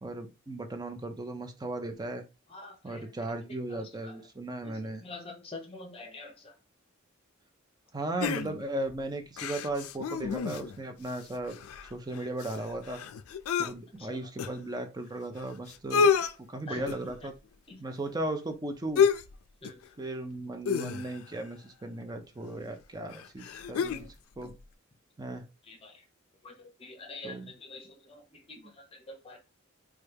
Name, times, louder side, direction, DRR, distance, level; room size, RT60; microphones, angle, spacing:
voice 1, 0.0-2.2 2.8-5.0 7.9-11.6 11.9-13.0 13.6-16.1 16.5-17.3 17.8-19.1 20.0-24.1 24.4-24.5 25.2-25.4 27.2-27.5, right 2 dB, 20° right, 0.4 m, -36 dB
voice 2, 2.5-3.4 3.7-4.2 4.6-6.6 14.0-14.2 16.7-17.1 17.7-17.8 19.6-19.9 25.6-26.0 26.4-29.4, left 2 dB, 25° left, 0.8 m, -46 dB
sound 1, 8.2-8.9 9.4-10.8 11.1-11.2 11.5-13.7 14.4-14.5 15.4-15.5 15.7-16.3 16.9-17.1 19.0-19.3 19.6-19.8 20.6-21.3 22.4-22.5 23.1-24.1 24.4-24.5, left 6 dB, 90° left, 0.3 m, -29 dB
3.2 x 2.3 x 3.3 m
head